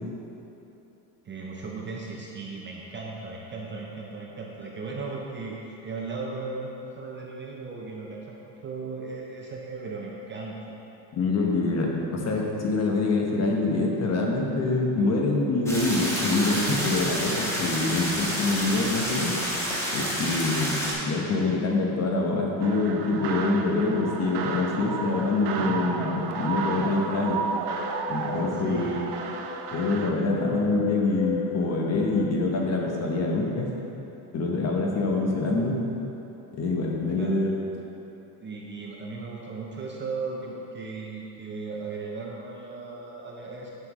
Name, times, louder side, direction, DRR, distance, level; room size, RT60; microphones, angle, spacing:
voice 1, 1.2-10.8 25.6-26.0 28.1-29.1 37.2-37.4 38.4-43.7, right 4 dB, 25° right, -2 dB, 0.5 m, -37 dB
voice 2, 11.1-19.4 19.9-27.4 28.1-29.0 29.7-33.7 34.3-35.8 36.5-37.5, left 3 dB, 35° left, 0 dB, 1.0 m, -25 dB
sound 1, 15.7-20.9, equal, 5° left, 1.2 m, -29 dB
sound 2, 21.4-32.3, left 8 dB, 60° left, 0.5 m, -39 dB
sound 3, 22.6-30.1, right 5 dB, 60° right, 0.7 m, -33 dB
9.8 x 5.8 x 3.0 m, 3.0 s
cardioid pair, 135°, 46 cm